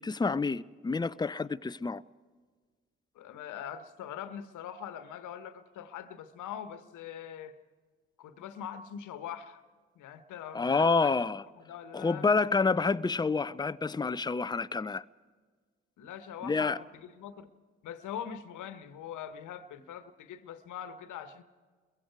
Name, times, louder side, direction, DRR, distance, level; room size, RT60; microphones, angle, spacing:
voice 1, 0.0-2.0 10.5-11.4 11.9-15.0 16.4-16.8, left 4 dB, 10° left, 0.6 m, -28 dB
voice 2, 3.1-7.6 8.2-9.6 9.9-11.2 11.5-12.3 16.0-17.5 17.8-21.4, left 9 dB, 60° left, 1.4 m, -42 dB
28.5 x 22.5 x 4.7 m
hypercardioid pair, 40°, 33 cm